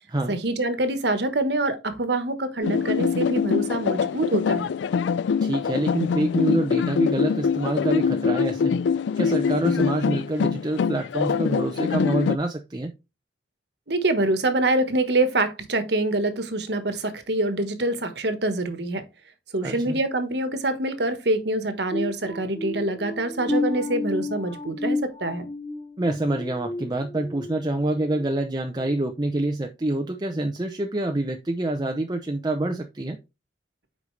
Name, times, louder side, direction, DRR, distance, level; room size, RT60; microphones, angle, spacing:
voice 1, 0.3-4.7 13.9-19.0 19.5-25.5, right 2 dB, 65° right, 1.3 m, -25 dB
sound 1, 2.6-12.4, left 6 dB, 75° left, 0.3 m, -24 dB
voice 2, 5.4-8.8 9.2-12.9 19.6-20.0 26.0-33.2, right 1 dB, 20° right, 0.6 m, -26 dB
sound 2, 21.9-27.6 28.0-28.3 28.8-29.0, left 2 dB, 25° left, 2.6 m, -31 dB
8.1 x 5.3 x 3.2 m
head